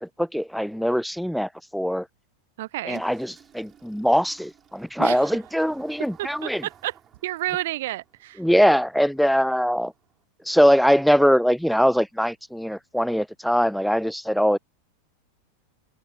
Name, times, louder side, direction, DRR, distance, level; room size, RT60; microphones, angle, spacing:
voice 1, 0.0-2.1 2.8-6.7 8.4-9.9 10.5-14.6, equal, ahead, 0.7 m, -22 dB
voice 2, 2.6-3.0 5.0-5.2 6.2-6.9 7.2-8.4, right 16 dB, 55° right, 0.3 m, -30 dB
Engine starting, 2.9-10.2, right 9 dB, 25° right, 6.3 m, -55 dB
figure-of-eight pair, 90°, 0 cm